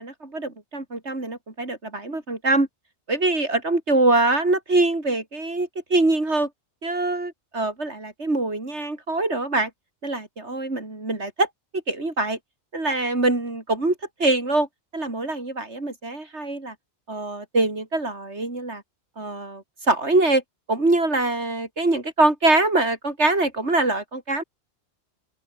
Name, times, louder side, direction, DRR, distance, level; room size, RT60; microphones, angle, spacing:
voice 1, 0.0-2.7 3.1-6.5 6.8-9.7 10.0-11.5 11.7-12.4 12.7-14.7 14.9-16.7 17.1-18.8 19.2-20.4 20.7-24.4, right 2 dB, 80° right, 4.8 m, -23 dB
open air
omnidirectional pair, 1.1 m